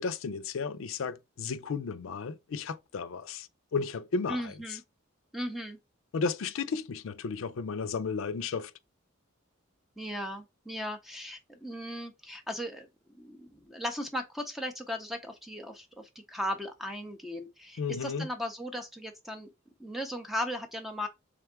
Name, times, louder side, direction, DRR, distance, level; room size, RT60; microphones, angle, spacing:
voice 1, 0.0-4.5 6.1-8.7 17.8-18.3, left 5 dB, 75° left, 0.4 m, -33 dB
voice 2, 4.3-4.8 5.3-5.8 10.0-19.5 19.8-21.1, equal, ahead, 0.5 m, -37 dB
3.6 x 3.4 x 3.3 m
head